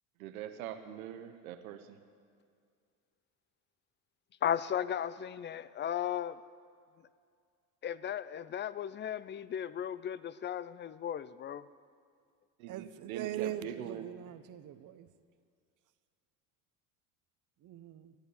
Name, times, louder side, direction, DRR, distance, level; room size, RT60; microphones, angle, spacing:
voice 1, 0.2-2.0 12.6-14.1, right 10 dB, 85° right, 0.9 m, -43 dB
voice 2, 4.4-6.4 7.8-11.7, left 9 dB, 25° left, 0.4 m, -35 dB
voice 3, 12.7-15.1 17.6-18.1, right 11 dB, 45° right, 0.8 m, -41 dB
13.0 x 10.0 x 8.1 m
supercardioid pair, 85°, 42 cm